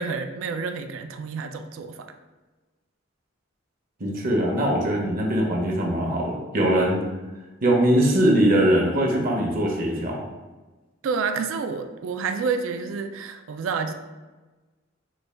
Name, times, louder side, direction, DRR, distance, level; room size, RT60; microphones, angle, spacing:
voice 1, 0.0-2.1 11.0-13.9, right 5 dB, 80° right, 7 dB, 0.3 m, -29 dB
voice 2, 4.0-7.0 7.6-10.2, right 1 dB, 45° right, 0 dB, 0.6 m, -21 dB
4.0 x 2.2 x 3.2 m, 1.2 s
head